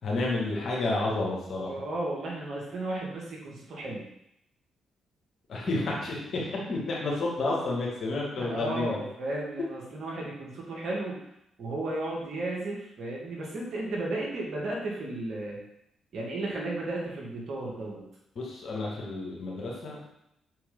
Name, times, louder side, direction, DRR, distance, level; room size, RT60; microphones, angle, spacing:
voice 1, 0.0-1.7 5.5-9.0 18.4-20.0, left 2 dB, 55° left, -3 dB, 1.9 m, -30 dB
voice 2, 1.7-4.1 8.4-11.2 11.6-15.6 16.1-18.1, right 2 dB, 55° right, -3 dB, 1.8 m, -34 dB
5.8 x 4.3 x 3.9 m, 0.80 s
figure-of-eight pair, 40°, 0 cm